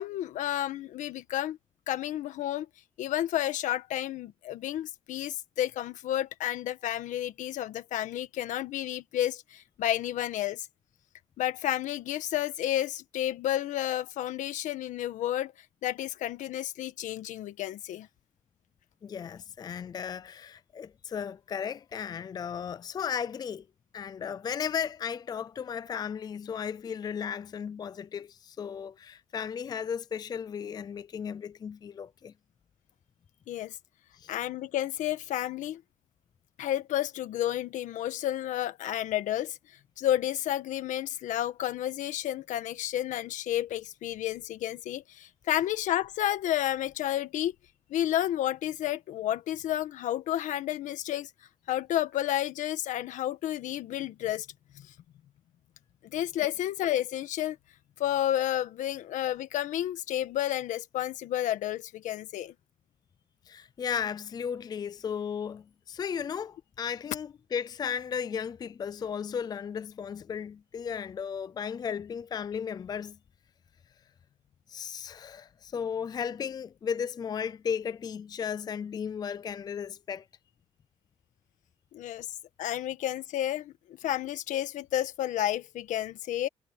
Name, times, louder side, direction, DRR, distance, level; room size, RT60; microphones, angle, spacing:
voice 1, 0.0-1.6 1.9-2.7 3.0-10.7 11.4-15.5 15.8-18.1 33.5-33.8 34.3-35.8 36.6-39.6 40.0-47.5 47.9-51.3 51.7-54.5 54.7-54.9 56.0-57.6 58.0-62.5 81.9-82.3 82.6-86.5, left 12 dB, 80° left, 1.5 m, -31 dB
voice 2, 19.0-23.7 23.9-32.3 34.1-34.3 63.5-73.2 74.7-80.3, left 7 dB, 30° left, 0.5 m, -35 dB
cardioid pair, 135°, 13 cm